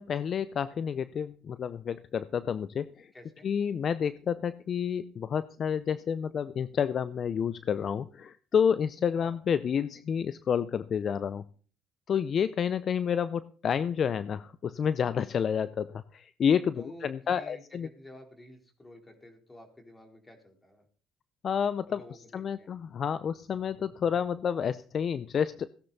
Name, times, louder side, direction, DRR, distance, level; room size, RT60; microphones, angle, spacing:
voice 1, 0.0-3.1 3.4-11.4 12.1-17.9 21.4-22.0 22.3-25.7, left 7 dB, 50° left, 15 dB, 0.5 m, -29 dB
voice 2, 3.1-3.5 9.2-9.4 16.7-20.8 21.9-22.7, equal, 15° left, 3 dB, 4.0 m, -51 dB
16.5 x 10.5 x 4.1 m, 0.43 s
supercardioid pair, 80°, 0 cm